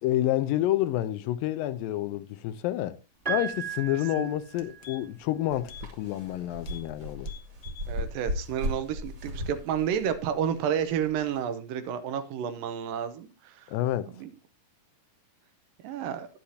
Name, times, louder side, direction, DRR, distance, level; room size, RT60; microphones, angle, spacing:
voice 1, 0.0-3.0 3.3-7.3 13.7-14.1, left 13 dB, 85° left, 2.5 m, -29 dB
Piano, 3.2-5.2 6.5-6.6, right 8 dB, 15° right, 2.4 m, -36 dB
sound 1, 4.4-5.3 5.6-5.9 6.2-6.3 6.6-6.9 7.2-7.9 8.3-8.4, left 10 dB, 60° left, 1.9 m, -49 dB
sound 2, 5.5-11.4, equal, 50° right, 3.5 m, -36 dB
voice 2, 7.9-13.7 14.2-14.3 15.8-16.3, right 8 dB, 85° right, 2.5 m, -30 dB
10.5 x 10.0 x 2.8 m
omnidirectional pair, 3.9 m